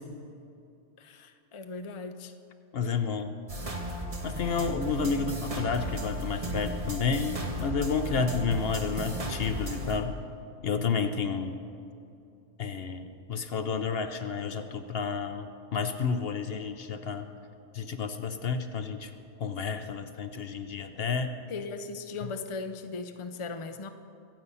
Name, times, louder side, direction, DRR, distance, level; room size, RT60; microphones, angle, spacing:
voice 1, 1.0-2.3 21.5-23.9, left 4 dB, 30° left, 7 dB, 0.6 m, -38 dB
voice 2, 2.7-3.3 4.2-10.1 10.6-11.6 12.6-17.3 17.7-19.1 19.4-21.3, left 5 dB, 60° left, 8 dB, 0.9 m, -31 dB
sound 1, 3.5-10.0, right 1 dB, 30° right, 1.4 m, -35 dB
24.5 x 8.2 x 5.6 m, 2.6 s
omnidirectional pair, 1.2 m